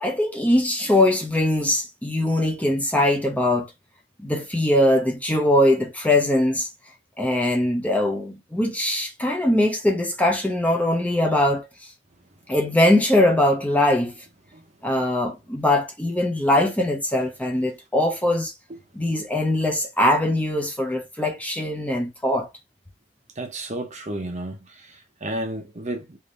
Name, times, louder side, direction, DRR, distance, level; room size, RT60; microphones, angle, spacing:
voice 1, 0.0-3.7 4.2-6.7 7.2-11.9 12.5-14.1 14.8-18.5 18.9-22.5, left 1 dB, 5° left, 0.7 m, -21 dB
voice 2, 23.4-24.9 25.2-26.2, right 1 dB, 35° right, 0.8 m, -31 dB
3.4 x 2.7 x 3.8 m
head